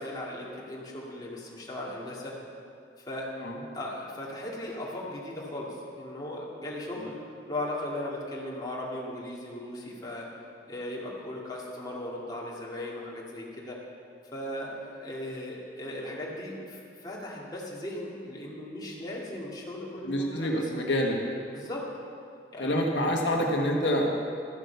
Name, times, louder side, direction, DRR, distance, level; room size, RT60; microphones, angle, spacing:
voice 1, 0.0-2.4 3.1-3.3 3.7-7.2 7.5-10.3 10.6-13.8 14.3-20.7 21.5-21.9 22.5-22.7, left 1 dB, 25° left, -4 dB, 2.1 m, -37 dB
voice 2, 20.0-21.2 22.6-24.1, equal, 90° left, 0 dB, 1.6 m, -27 dB
13.0 x 8.1 x 6.9 m, 2.3 s
head